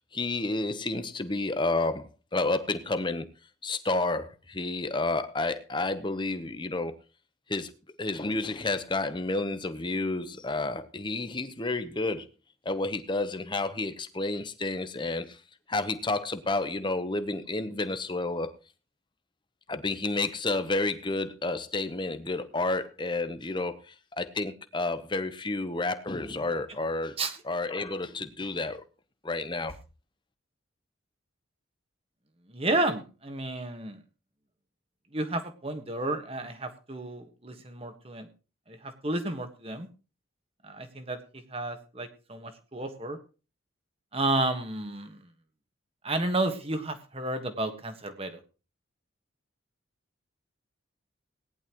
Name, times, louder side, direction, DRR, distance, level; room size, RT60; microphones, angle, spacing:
voice 1, 0.1-3.3 3.6-6.9 7.5-7.7 8.0-12.3 12.6-15.4 15.7-18.5 19.7-23.8 24.2-27.1 27.5-28.8 29.2-29.7, left 2 dB, 25° left, 0.9 m, -30 dB
voice 2, 32.5-34.0 35.1-38.3 38.7-39.9 40.6-41.2 41.5-43.2 44.1-45.3 46.0-48.4, right 2 dB, 30° right, 1.5 m, -31 dB
18.0 x 11.0 x 3.1 m
head